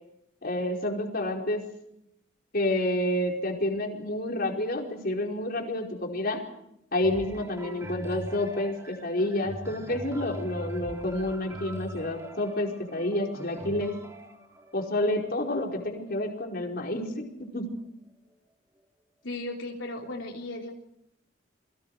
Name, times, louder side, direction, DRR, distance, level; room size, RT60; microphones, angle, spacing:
voice 1, 0.4-1.6 2.5-6.4 6.9-13.9 14.7-17.6, left 1 dB, 55° left, 1 dB, 4.8 m, -29 dB
sound 1, 7.0-16.8 17.5-17.6, right 1 dB, 15° right, 3.0 m, -42 dB
voice 2, 19.2-20.7, left 2 dB, 85° left, 0 dB, 3.9 m, -36 dB
29.0 x 23.5 x 4.9 m, 0.78 s
head